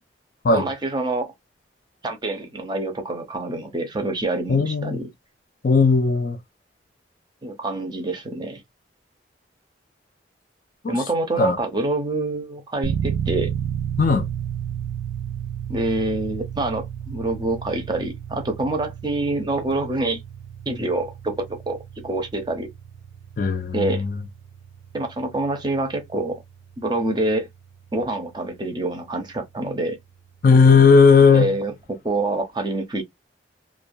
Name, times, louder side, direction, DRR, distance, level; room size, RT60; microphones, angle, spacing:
voice 1, 0.5-1.3 2.0-5.1 7.4-8.6 10.9-13.5 15.7-20.2 20.7-22.7 23.7-24.0 24.9-26.4 26.8-27.5 27.9-30.0 31.3-33.0, right 2 dB, 25° right, 0.5 m, -26 dB
voice 2, 4.5-5.0 5.6-6.4 10.8-11.0 11.4-11.6 14.0-14.3 23.4-24.1 30.4-31.6, left 5 dB, 45° left, 0.4 m, -16 dB
sound 1, 12.8-29.6, right 8 dB, 80° right, 0.3 m, -33 dB
2.3 x 2.2 x 2.5 m
head